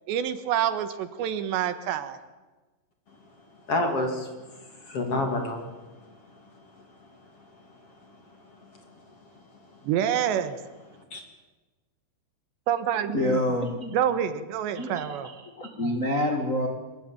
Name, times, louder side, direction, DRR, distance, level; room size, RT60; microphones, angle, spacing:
voice 1, 0.1-2.2 9.8-10.6 12.7-13.4 13.9-15.3, right 10 dB, 75° right, 11 dB, 3.3 m, -27 dB
voice 2, 3.7-5.7 11.1-11.2, left 2 dB, 35° left, 4 dB, 2.9 m, -28 dB
voice 3, 13.1-13.9 14.7-16.7, left 1 dB, 60° left, 3 dB, 0.8 m, -27 dB
24.5 x 21.5 x 9.0 m, 1.2 s
omnidirectional pair, 5.4 m